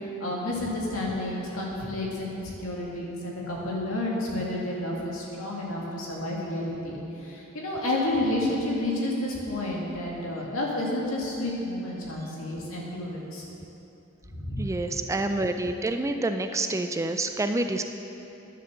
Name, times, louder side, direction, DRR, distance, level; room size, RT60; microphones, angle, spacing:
voice 1, 0.2-13.4 14.3-14.6, left 1 dB, 70° left, -4 dB, 2.3 m, -30 dB
voice 2, 14.6-17.8, right 2 dB, 15° right, 7 dB, 0.3 m, -28 dB
10.5 x 7.5 x 6.6 m, 3.0 s
head